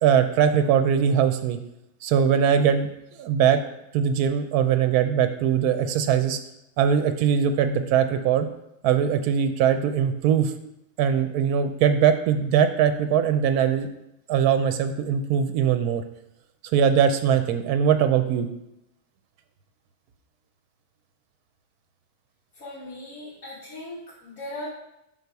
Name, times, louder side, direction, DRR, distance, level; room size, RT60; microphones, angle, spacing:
voice 1, 0.0-1.6 2.0-3.6 3.9-6.4 6.8-8.5 8.8-10.5 11.0-13.9 14.3-16.0 16.7-18.5, right 8 dB, 80° right, 8 dB, 1.1 m, -21 dB
voice 2, 22.6-24.7, left 1 dB, 70° left, -8 dB, 1.7 m, -38 dB
5.5 x 3.9 x 4.6 m, 0.84 s
omnidirectional pair, 1.6 m